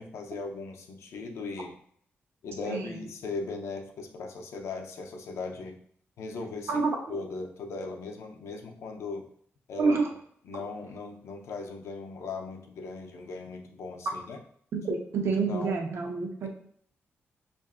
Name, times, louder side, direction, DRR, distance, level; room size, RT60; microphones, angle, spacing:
voice 1, 0.0-1.8 2.4-5.8 6.2-6.8 7.1-9.3 9.7-9.9 10.4-14.4 15.5-15.7 16.4-16.5, left 3 dB, 85° left, 3 dB, 0.6 m, -38 dB
voice 2, 2.6-3.0 6.7-7.2 9.8-10.1 14.7-16.5, right 4 dB, 65° right, 1 dB, 0.7 m, -28 dB
5.5 x 2.5 x 2.4 m, 0.63 s
wide cardioid pair, 165°, 5 cm